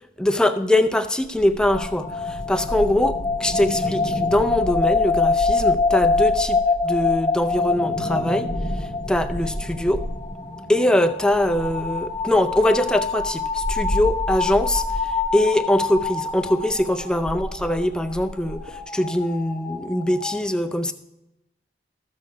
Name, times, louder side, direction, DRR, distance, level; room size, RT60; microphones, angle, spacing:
voice 1, 0.2-8.5 8.8-10.1 10.7-14.8 15.3-20.9, left 1 dB, 5° left, 7 dB, 0.4 m, -22 dB
sound 1, 1.2-10.4 11.2-18.8, equal, 55° right, 1.5 m, -33 dB
sound 2, 1.7-20.4, left 4 dB, 20° left, 0.8 m, -26 dB
13.5 x 6.7 x 5.2 m, 0.93 s
head